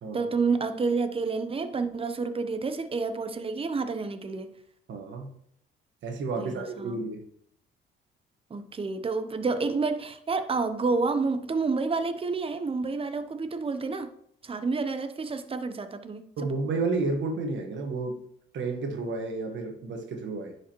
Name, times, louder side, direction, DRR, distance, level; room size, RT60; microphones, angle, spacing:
voice 1, 0.1-4.6 6.4-7.0 8.5-14.1 14.4-16.3, right 4 dB, 30° right, 0.8 m, -29 dB
voice 2, 4.9-5.3 6.0-7.2 16.4-18.2 18.5-20.5, right 3 dB, 70° right, 1.5 m, -31 dB
10.0 x 4.9 x 3.0 m
cardioid pair, 90°, 20 cm